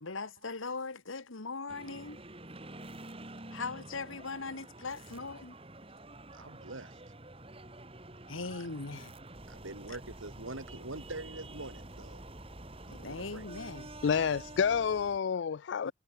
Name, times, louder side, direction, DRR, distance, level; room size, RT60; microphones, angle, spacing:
voice 1, 0.0-2.2 3.5-5.6 8.3-9.1 12.9-13.9 15.8-15.9, left 3 dB, 85° left, 1.8 m, -40 dB
sound 1, 1.7-15.2, right 2 dB, 30° right, 2.7 m, -48 dB
voice 2, 6.3-7.0 8.4-8.7 9.5-12.2 12.9-13.5, right 2 dB, 85° right, 3.4 m, -44 dB
voice 3, 14.0-15.9, left 6 dB, 65° left, 0.4 m, -29 dB
head